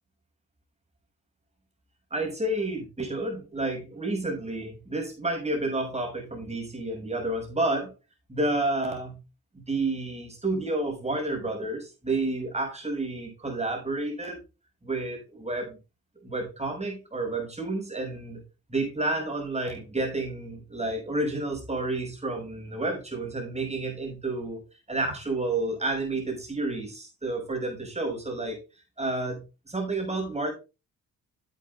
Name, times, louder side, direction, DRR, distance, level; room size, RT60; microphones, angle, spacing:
voice 1, 2.1-7.9 8.3-9.2 9.5-14.4 14.8-15.8 16.2-18.4 18.7-24.6 24.9-28.6 29.0-29.4 29.7-30.5, right 2 dB, 20° right, 2 dB, 6.3 m, -30 dB
11.0 x 8.4 x 3.5 m, 0.29 s
supercardioid pair, 60°, 31 cm